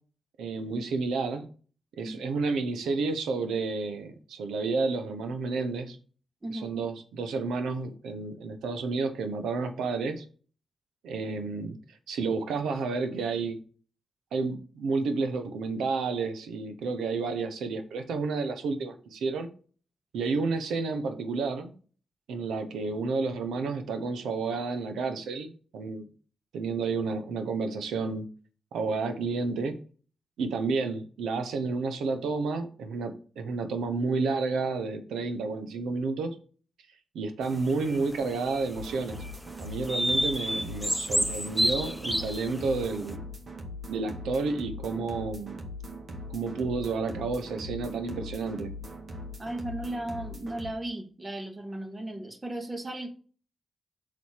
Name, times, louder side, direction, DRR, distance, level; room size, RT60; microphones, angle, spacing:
voice 1, 0.4-1.5 2.0-6.0 6.5-10.3 11.0-11.7 12.1-13.6 14.3-19.5 20.1-21.7 22.3-26.1 26.5-28.3 28.7-29.7 30.4-36.4 37.1-39.2 39.6-43.2 43.9-45.6 46.3-48.7, right 4 dB, 85° right, 0.9 m, -30 dB
voice 2, 6.4-6.8 49.4-53.1, right 1 dB, 30° right, 2.0 m, -36 dB
sound 1, 37.7-38.7 39.2-39.3 39.9-42.8, equal, 5° right, 0.6 m, -29 dB
sound 2, 38.7-50.7, left 1 dB, 60° right, 2.1 m, -41 dB
6.4 x 4.2 x 6.4 m
supercardioid pair, 45°, 0 cm